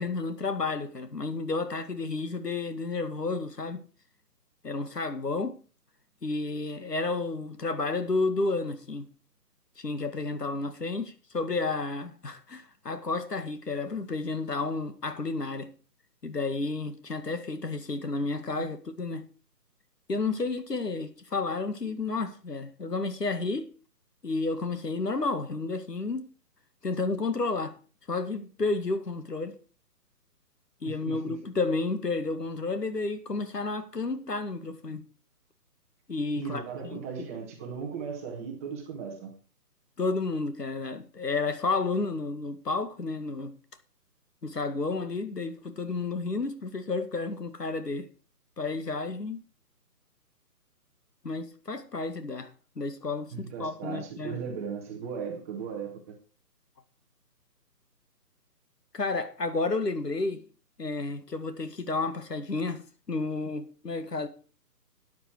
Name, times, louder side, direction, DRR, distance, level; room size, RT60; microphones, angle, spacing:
voice 1, 0.0-3.8 4.6-5.6 6.2-9.1 9.8-15.7 16.2-19.3 20.1-23.7 24.2-26.2 26.8-27.8 28.1-29.6 30.8-35.0 36.1-37.3 40.0-43.5 44.4-48.1 48.6-49.4 51.2-52.5 52.8-54.4 58.9-60.4 60.8-64.3, left 3 dB, 75° left, 2.0 m, -31 dB
voice 2, 30.8-31.3 36.4-39.3 53.3-56.1, right 6 dB, 10° right, 0.9 m, -37 dB
13.5 x 9.4 x 4.7 m
figure-of-eight pair, 145°, 49 cm